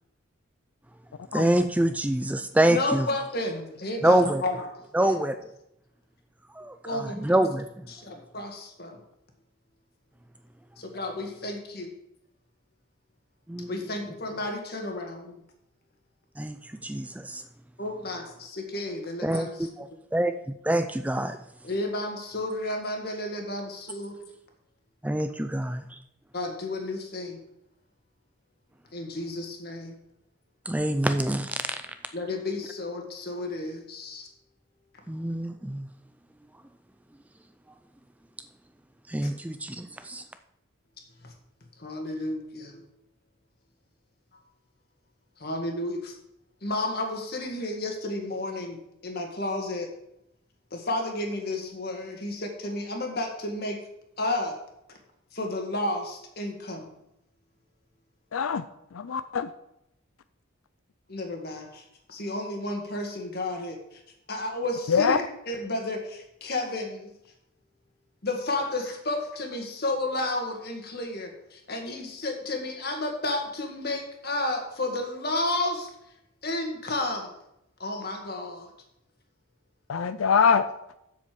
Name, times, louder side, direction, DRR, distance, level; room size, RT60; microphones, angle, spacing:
voice 1, 1.3-3.1 4.0-4.4 4.9-5.4 6.6-7.6 13.5-13.7 16.4-17.4 19.2-19.5 19.8-20.3 20.6-21.4 25.0-25.8 30.7-31.5 35.1-35.9 39.1-40.2, right 1 dB, 5° right, 9 dB, 0.4 m, -25 dB
voice 2, 2.7-5.2 6.8-7.2 7.9-9.0 10.8-11.9 13.7-15.4 17.8-19.7 21.6-24.2 26.3-27.4 28.9-30.0 32.1-34.3 39.2-39.3 41.2-41.3 41.8-42.9 45.4-46.1 46.6-49.9 50.7-53.8 54.2-54.5 55.3-56.9 61.1-64.0 64.3-67.1 68.2-75.9 76.4-77.3 77.8-78.7, left 2 dB, 50° left, 3 dB, 1.9 m, -32 dB
voice 3, 58.3-58.6 58.9-59.5 64.9-65.2 79.9-80.7, left 6 dB, 90° left, 12 dB, 0.5 m, -23 dB
7.7 x 7.1 x 6.8 m, 0.82 s
head